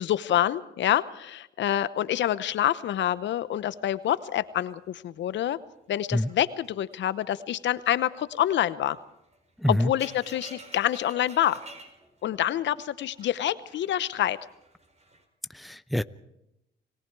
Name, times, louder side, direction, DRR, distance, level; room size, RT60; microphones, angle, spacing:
voice 1, 0.0-5.6 5.9-9.0 9.7-11.6 12.2-14.4, left 12 dB, 65° left, 15 dB, 0.9 m, -27 dB
sound 1, 2.4-4.8 5.1-5.5 5.9-15.2, right 2 dB, 35° right, 4.7 m, -52 dB
voice 2, 9.6-9.9 15.5-16.0, left 1 dB, ahead, 13 dB, 0.8 m, -25 dB
30.0 x 18.5 x 4.7 m, 0.87 s
supercardioid pair, 75°, 20 cm